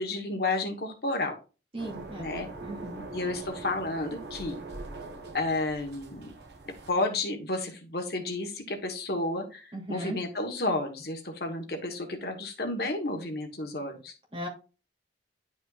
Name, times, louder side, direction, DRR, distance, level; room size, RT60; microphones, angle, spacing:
voice 1, 0.0-1.3 2.2-2.5 3.1-4.6 5.3-6.3 6.9-14.1, left 2 dB, 55° left, 4 dB, 1.3 m, -31 dB
voice 2, 1.7-2.3 2.6-3.0 9.7-10.2 14.3-14.5, right 1 dB, 30° right, -2 dB, 2.8 m, -37 dB
sound 1, 1.8-6.9, right 2 dB, 65° right, 1.4 m, -42 dB
10.5 x 5.3 x 2.4 m, 0.32 s
head